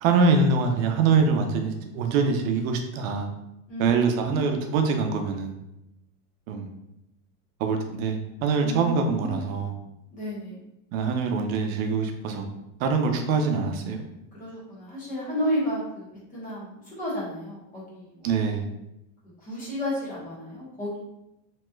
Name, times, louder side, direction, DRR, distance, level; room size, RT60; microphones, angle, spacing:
voice 1, 0.0-3.3 3.8-5.5 6.5-6.7 7.6-9.7 10.9-12.4 12.8-14.0 18.2-18.7, right 4 dB, 85° right, 5 dB, 0.6 m, -24 dB
voice 2, 4.2-4.5 8.6-9.4 10.1-10.6 14.3-16.1 16.3-18.3 19.4-21.0, equal, 20° left, -8 dB, 1.1 m, -32 dB
3.0 x 2.9 x 2.3 m, 0.89 s
supercardioid pair, 165°, 40 cm